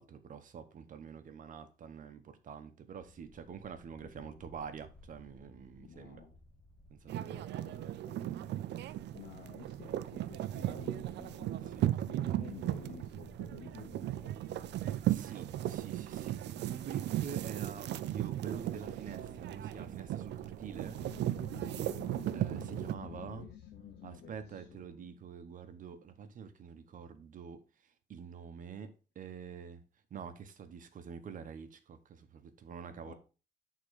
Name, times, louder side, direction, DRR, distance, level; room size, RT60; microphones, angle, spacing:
voice 1, 0.0-6.2 6.9-7.5 11.7-11.9 14.8-21.0 22.3-23.4 24.0-27.6 28.1-29.8 30.1-33.1, right 7 dB, 50° right, 0.9 m, -47 dB
sound 1, 2.9-22.2, left 1 dB, 5° left, 1.0 m, -58 dB
voice 2, 4.0-4.4 5.8-6.4 7.1-8.6 9.1-11.8 12.1-14.4 22.8-24.9 33.0-33.1, left 7 dB, 60° left, 1.8 m, -53 dB
sound 2, 7.1-22.9, right 13 dB, 75° right, 0.5 m, -36 dB
sound 3, 20.8-26.1, left 12 dB, 80° left, 0.6 m, -51 dB
8.5 x 3.7 x 4.7 m
cardioid pair, 160°, 18 cm